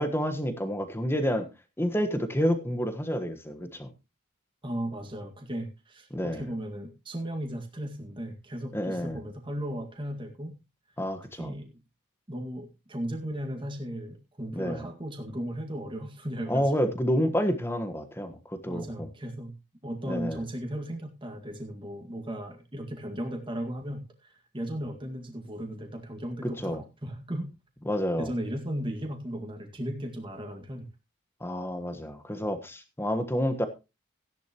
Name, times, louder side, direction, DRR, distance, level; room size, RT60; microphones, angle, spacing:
voice 1, 0.0-1.5 1.8-3.9 6.1-6.5 8.7-9.2 11.0-11.5 14.5-14.9 16.5-19.1 20.1-20.4 26.4-26.8 27.9-28.3 31.4-33.7, equal, 10° left, 1.3 m, -29 dB
voice 2, 4.6-10.5 11.3-11.8 12.3-16.9 18.7-19.5 19.8-26.8 27.0-27.5 28.2-30.8, equal, 20° right, 1.9 m, -36 dB
15.0 x 10.5 x 3.0 m
head